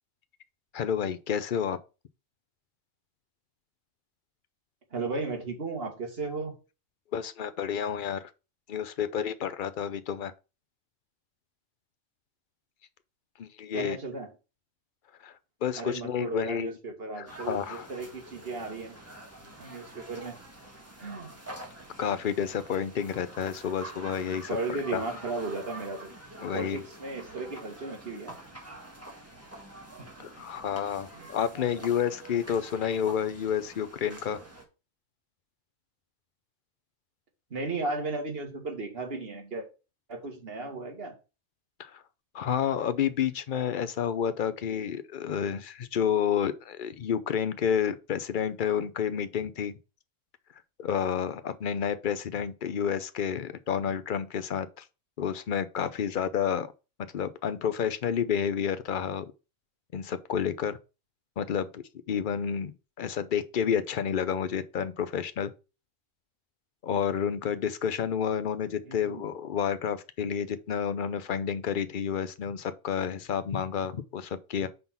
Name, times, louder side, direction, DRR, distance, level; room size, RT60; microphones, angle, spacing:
voice 1, 0.7-1.8 7.1-8.3 8.7-10.3 13.4-14.0 15.2-15.3 15.6-16.8 17.2-17.9 22.0-24.5 24.9-25.0 26.4-26.8 30.2-34.4 41.8-42.0 42.3-49.8 50.8-54.8 55.2-56.7 57.1-59.3 59.9-60.8 61.4-65.5 66.8-74.7, left 8 dB, 50° left, 0.7 m, -30 dB
voice 2, 4.9-6.6 13.7-14.3 15.8-19.0 19.6-20.4 21.0-21.3 24.5-26.1 26.4-28.4 30.0-30.1 31.1-31.3 31.5-31.9 37.5-39.7 40.1-41.2 68.9-69.3, right 3 dB, 50° right, 1.9 m, -35 dB
sound 1, 17.3-34.6, right 1 dB, 10° right, 1.5 m, -46 dB
5.5 x 3.9 x 5.8 m
omnidirectional pair, 1.3 m